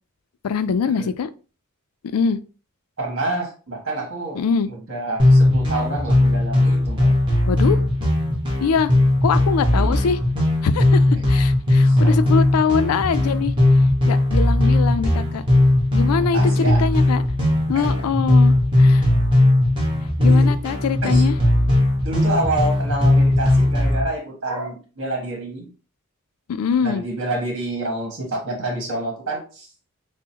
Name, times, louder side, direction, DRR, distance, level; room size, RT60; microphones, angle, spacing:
voice 1, 0.4-1.3 2.1-2.4 4.4-4.7 7.5-7.8 8.6-8.9 9.2-10.2 10.6-11.0 11.3-13.5 14.1-15.4 15.9-17.2 17.7-19.1 20.2-21.3 26.5-27.0, left 6 dB, 85° left, 0.4 m, -23 dB
voice 2, 3.0-4.4 4.7-7.1 9.7-9.9 11.1-11.2 11.8-12.1 14.0-14.1 16.2-16.8 20.2-20.5 21.0-21.2 22.0-25.7 26.8-29.7, right 2 dB, 60° right, 1.6 m, -28 dB
sound 1, 5.2-24.0, left 1 dB, 20° right, 1.1 m, -18 dB
6.1 x 2.1 x 2.8 m
head